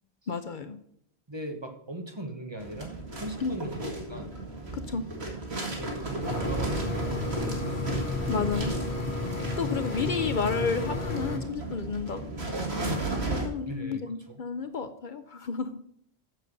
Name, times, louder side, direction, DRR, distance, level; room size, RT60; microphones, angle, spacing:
voice 1, 0.3-0.8 3.4-3.5 4.7-5.1 8.3-8.8 9.6-12.3 13.3-15.8, left 5 dB, 55° left, 9 dB, 0.8 m, -31 dB
voice 2, 1.3-4.3 5.8-8.5 13.7-14.0, right 1 dB, 25° right, 4 dB, 1.2 m, -39 dB
sound 1, 2.6-13.5, right 2 dB, 85° right, 2.3 m, -34 dB
sound 2, 6.2-11.4, left 2 dB, 85° left, 2.0 m, -32 dB
7.6 x 6.8 x 6.6 m, 0.70 s
omnidirectional pair, 1.0 m